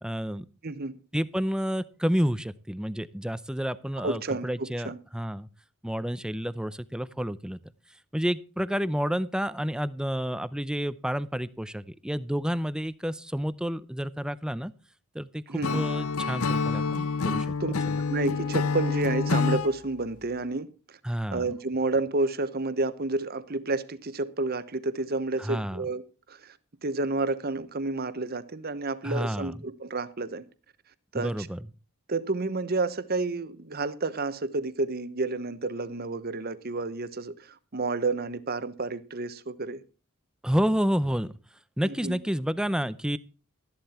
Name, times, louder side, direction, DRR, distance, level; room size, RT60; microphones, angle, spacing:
voice 1, 0.0-0.4 1.1-5.5 5.8-7.6 8.1-14.7 15.1-17.5 17.9-18.0 21.0-21.5 25.4-25.9 29.0-29.5 31.1-31.7 40.4-41.3 41.8-43.2, equal, 5° right, 0.6 m, -30 dB
voice 2, 4.0-5.0 15.5-15.8 17.6-17.7 18.1-20.7 21.3-26.0 26.3-26.6 26.8-30.4 31.1-31.5 32.1-39.8 41.8-42.2, right 3 dB, 45° right, 1.0 m, -30 dB
Acoustic guitar / Strum, 15.6-19.7, left 4 dB, 90° left, 0.7 m, -27 dB
13.5 x 11.5 x 4.3 m
head